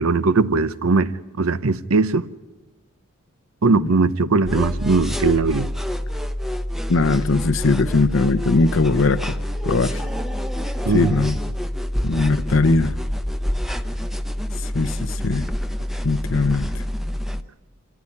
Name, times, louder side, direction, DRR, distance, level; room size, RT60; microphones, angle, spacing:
voice 1, 0.0-2.2 3.6-5.7 10.9-11.2, right 3 dB, 85° right, 0.8 m, -19 dB
sound 1, 4.4-17.4, equal, ahead, 0.7 m, -27 dB
voice 2, 6.9-9.3 9.6-10.0 10.9-11.4 12.0-13.0 14.6-15.5 16.0-16.8, left 3 dB, 65° left, 0.7 m, -20 dB
26.0 x 14.0 x 9.9 m
head